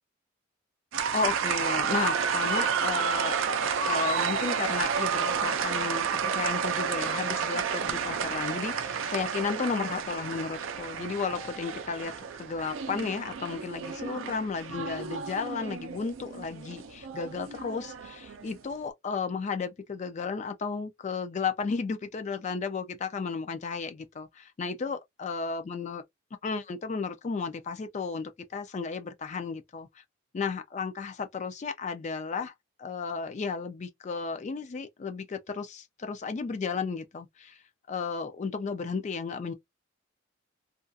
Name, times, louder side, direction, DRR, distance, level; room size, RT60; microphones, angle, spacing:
sound 1, 0.9-18.6, right 6 dB, 70° right, 0.4 m, -31 dB
voice 1, 1.0-3.4 3.8-12.1 12.4-26.0 26.4-30.0 30.3-32.5 32.8-37.6 37.9-39.5, left 5 dB, 35° left, 0.3 m, -33 dB
2.6 x 2.4 x 2.3 m
head